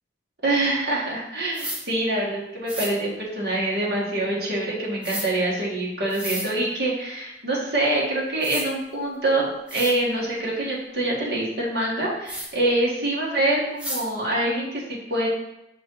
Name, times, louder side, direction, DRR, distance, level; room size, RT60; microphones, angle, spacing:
voice 1, 0.4-15.3, right 1 dB, 60° right, -5 dB, 1.9 m, -25 dB
sound 1, 1.5-1.8 2.7-2.9 5.0-5.3 6.1-6.5 7.9-8.0 8.4-8.7 9.3-9.4 9.7-10.0 12.3-12.5 13.8-14.0, equal, 5° right, 0.7 m, -32 dB
6.0 x 3.9 x 4.7 m, 0.86 s
head